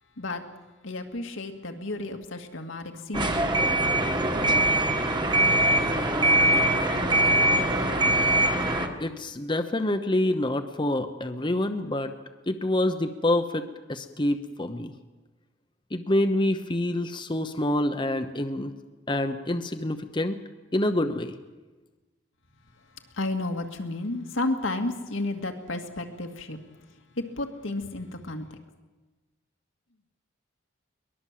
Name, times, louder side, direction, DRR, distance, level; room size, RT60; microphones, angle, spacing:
voice 1, 0.8-3.5 23.1-26.6 27.2-28.6, left 2 dB, 80° left, 4 dB, 2.2 m, -32 dB
sound 1, 3.1-8.9, right 1 dB, 25° right, 1.7 m, -22 dB
voice 2, 9.0-12.1 12.5-14.9 15.9-18.7 19.1-20.4 20.7-21.3, left 1 dB, 25° left, 7 dB, 0.9 m, -27 dB
22.5 x 20.5 x 7.6 m, 1.2 s
head